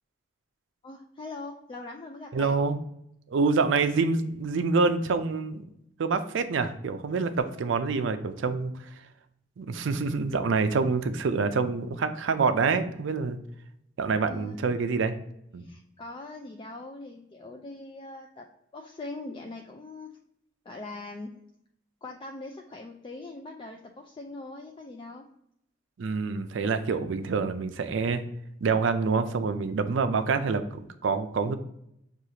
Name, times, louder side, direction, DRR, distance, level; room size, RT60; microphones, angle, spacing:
voice 1, 0.8-2.6 14.3-14.6 15.6-18.5 18.7-20.1 20.7-21.3 22.0-25.3, left 2 dB, 25° left, 2 dB, 0.3 m, -41 dB
voice 2, 2.3-2.8 3.3-5.6 6.0-8.7 9.6-13.4 14.0-15.2 15.5-15.6 26.0-28.2 28.6-31.5, right 4 dB, 70° right, 10 dB, 0.4 m, -26 dB
6.3 x 2.4 x 2.8 m, 0.77 s
head